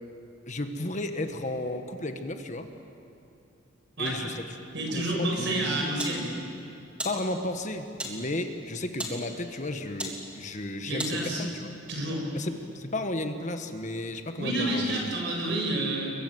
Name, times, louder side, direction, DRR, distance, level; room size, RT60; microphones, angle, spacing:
voice 1, 0.5-2.7 4.0-4.4 4.9-5.9 7.0-11.7 12.3-15.0, left 1 dB, 35° left, 7 dB, 1.4 m, -33 dB
voice 2, 4.7-6.3 10.9-11.4 11.9-12.2 14.4-16.1, right 1 dB, 60° right, 0 dB, 7.4 m, -29 dB
sound 1, 5.4-11.7, equal, 5° right, 3.3 m, -41 dB
30.0 x 23.0 x 7.8 m, 2.7 s
head